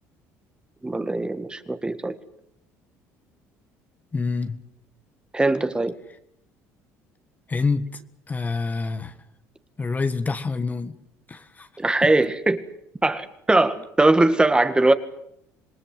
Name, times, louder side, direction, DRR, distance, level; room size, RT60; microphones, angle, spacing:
voice 1, 0.8-2.2 5.3-5.9 11.8-12.6 13.0-14.9, right 2 dB, 15° right, 10 dB, 2.0 m, -20 dB
voice 2, 4.1-4.6 7.5-8.0 8.3-9.2 9.8-11.0 11.3-11.7 12.0-12.1, left 4 dB, 25° left, 9 dB, 1.6 m, -27 dB
26.5 x 19.5 x 7.9 m, 0.75 s
supercardioid pair, 85°, 6 cm